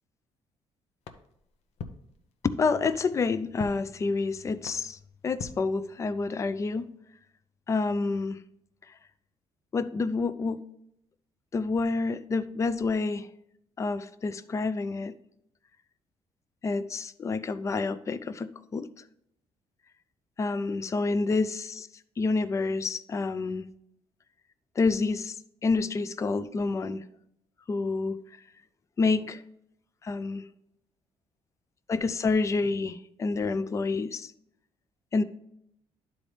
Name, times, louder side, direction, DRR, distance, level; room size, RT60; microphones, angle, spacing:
sound 1, 1.0-6.4, left 6 dB, 75° left, 0.7 m, -46 dB
voice 1, 2.4-5.0 5.2-6.9 7.7-8.4 9.7-10.6 11.5-13.3 13.8-15.1 16.6-18.9 20.4-21.9 22.2-23.7 24.8-25.3 25.6-27.0 27.7-28.2 29.0-29.4 30.0-30.4 31.9-34.3 35.1-35.2, left 4 dB, 25° left, 14 dB, 0.4 m, -28 dB
11.5 x 4.1 x 3.3 m, 0.77 s
cardioid pair, 135°, 11 cm